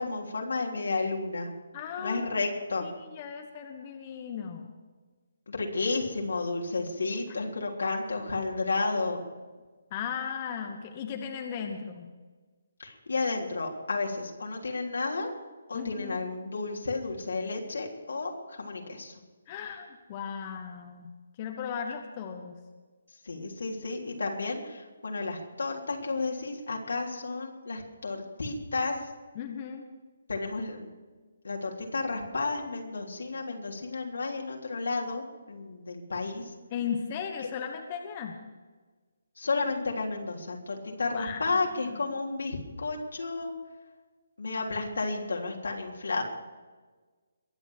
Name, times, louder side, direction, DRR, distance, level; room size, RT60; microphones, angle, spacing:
voice 1, 0.0-1.5 2.0-2.9 5.5-9.3 12.8-15.3 15.7-19.1 23.2-29.0 30.3-30.9 31.4-36.4 37.4-37.5 39.4-43.5 44.4-46.2, left 3 dB, 85° left, 1 dB, 3.5 m, -32 dB
voice 2, 1.7-2.2 2.8-4.7 9.9-12.1 15.7-16.3 19.5-21.1 21.4-22.6 29.3-29.9 36.7-38.4 41.1-42.0, left 7 dB, 25° left, 4 dB, 1.2 m, -36 dB
22.0 x 8.0 x 6.4 m, 1.4 s
hypercardioid pair, 165°, 0 cm